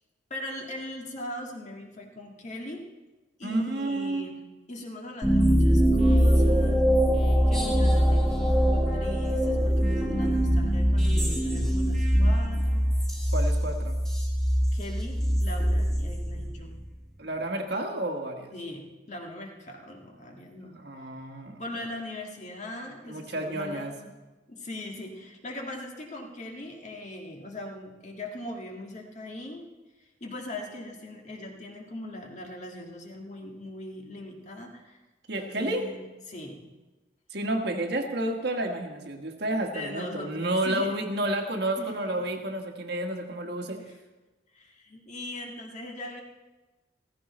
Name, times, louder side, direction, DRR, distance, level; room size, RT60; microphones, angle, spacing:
voice 1, 0.3-2.8 3.4-4.3 4.7-6.8 7.5-12.8 14.7-16.8 18.5-20.8 21.6-24.1 24.5-29.7 30.0-35.0 35.4-36.0 36.3-36.7 39.6-41.1 41.8-42.3 43.8-44.0 44.5-46.2, left 1 dB, 40° left, 1 dB, 1.9 m, -40 dB
voice 2, 3.4-4.3 13.3-14.0 17.2-18.5 20.8-21.9 23.1-23.9 35.3-35.8 37.3-43.8, right 1 dB, 60° right, 3 dB, 1.5 m, -30 dB
sound 1, 5.2-16.8, equal, 5° left, 2.0 m, -23 dB
15.0 x 15.0 x 4.3 m, 1.2 s
head